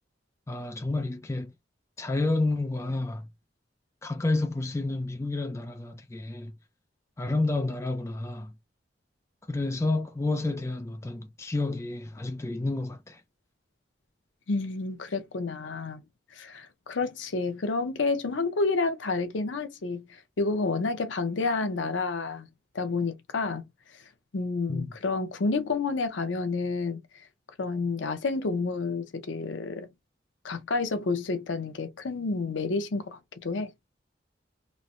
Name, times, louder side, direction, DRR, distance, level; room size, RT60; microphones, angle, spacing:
voice 1, 0.5-1.5 2.0-3.3 4.0-6.5 7.2-8.5 9.5-13.2 24.7-24.9, left 2 dB, 15° left, 0.3 m, -30 dB
voice 2, 14.5-16.0 16.3-20.0 20.4-22.5 22.7-23.7 24.3-27.0 27.6-29.9 30.4-33.7, left 3 dB, 80° left, 0.6 m, -29 dB
3.1 x 2.1 x 2.5 m
head